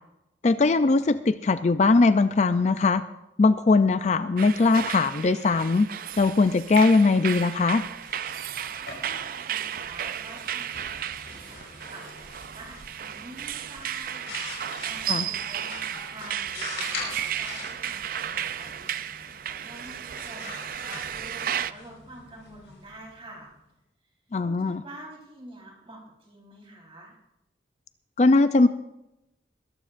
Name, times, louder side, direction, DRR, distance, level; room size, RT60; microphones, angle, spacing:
voice 1, 0.4-3.0 3.4-5.9 6.2-7.8 15.1-15.3 24.3-24.8 28.2-28.7, left 3 dB, 40° left, 11 dB, 0.4 m, -20 dB
sound 1, 4.4-21.7, right 10 dB, 50° right, 0.4 m, -34 dB
sound 2, 7.8-23.5, left 3 dB, 75° left, 4.8 m, -43 dB
voice 2, 8.8-14.4 14.8-23.5 24.4-27.1, right 1 dB, 30° right, -2 dB, 4.2 m, -47 dB
21.5 x 13.5 x 2.5 m, 0.88 s
head